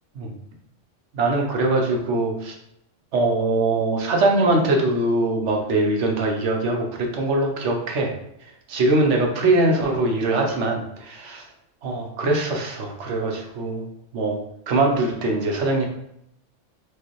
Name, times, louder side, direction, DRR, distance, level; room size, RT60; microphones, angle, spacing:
voice 1, 1.1-2.5 3.1-8.1 8.7-11.4 11.8-13.8 14.1-14.4 14.7-15.9, right 2 dB, 70° right, 2 dB, 1.0 m, -22 dB
4.7 x 2.4 x 3.0 m, 0.78 s
omnidirectional pair, 1.3 m